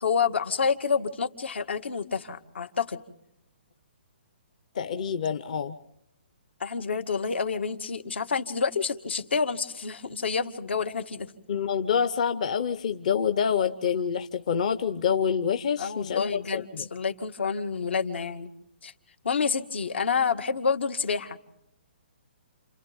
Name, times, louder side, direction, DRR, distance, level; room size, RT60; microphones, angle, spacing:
voice 1, 0.0-3.0 6.6-11.3 15.8-16.6 16.9-18.5 18.8-18.9 19.2-21.4, left 5 dB, 75° left, 8 dB, 2.0 m, -28 dB
voice 2, 4.7-5.8 11.5-16.9, left 7 dB, 40° left, 9 dB, 0.8 m, -27 dB
30.0 x 28.5 x 3.6 m, 0.80 s
hypercardioid pair, 175°, 6 cm